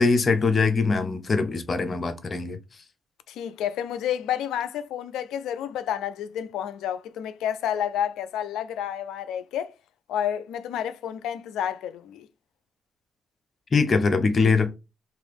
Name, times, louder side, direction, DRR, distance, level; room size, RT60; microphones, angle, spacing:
voice 1, 0.0-2.6 13.7-14.8, left 4 dB, 40° left, 0.6 m, -22 dB
voice 2, 3.3-9.7 10.1-12.3, left 10 dB, 85° left, 0.3 m, -30 dB
2.9 x 2.4 x 3.2 m
cardioid pair, 70°, 0 cm